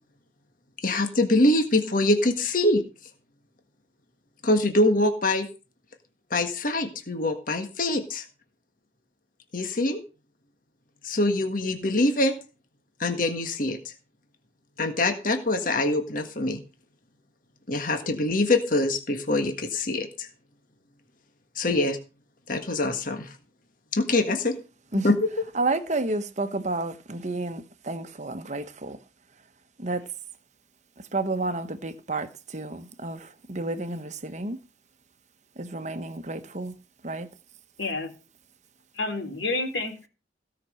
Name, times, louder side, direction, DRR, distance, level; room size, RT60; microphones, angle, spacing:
voice 1, 0.8-2.8 4.4-5.5 6.3-8.3 9.5-10.0 11.0-12.3 13.0-13.9 14.8-16.6 17.7-20.3 21.5-22.0 22.5-23.3 23.9-24.6 25.0-25.3, left 2 dB, 45° left, 1.6 m, -24 dB
voice 2, 25.5-29.0 29.8-30.0 31.1-34.6 35.6-36.7 37.0-37.3, right 2 dB, 40° right, 1.1 m, -30 dB
voice 3, 37.8-38.1 39.0-40.1, left 2 dB, 85° left, 3.9 m, -29 dB
16.5 x 6.0 x 6.5 m
head